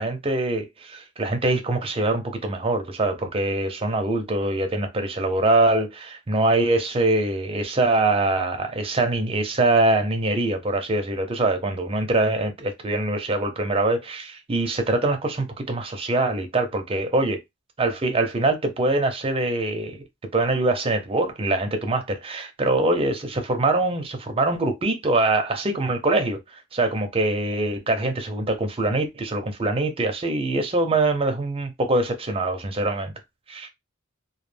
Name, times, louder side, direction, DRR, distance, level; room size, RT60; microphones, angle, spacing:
voice 1, 0.0-17.4 17.8-20.0 20.3-26.4 26.7-33.1 33.5-33.7, right 2 dB, 25° right, 0.5 m, -23 dB
2.2 x 2.1 x 3.2 m
head